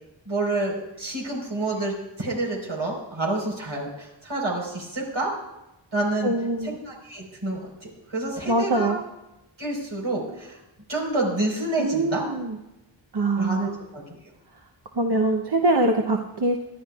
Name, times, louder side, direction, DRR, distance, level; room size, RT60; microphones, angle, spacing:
voice 1, 0.2-5.3 5.9-6.3 6.6-8.9 9.6-10.6 10.9-12.2 13.4-14.0, right 2 dB, 85° right, -2 dB, 4.5 m, -28 dB
voice 2, 6.2-6.7 8.5-9.0 11.8-12.6 13.1-13.8 15.0-16.6, right 2 dB, 55° right, 2 dB, 0.9 m, -23 dB
23.5 x 11.0 x 2.4 m, 0.97 s
wide cardioid pair, 70°, 46 cm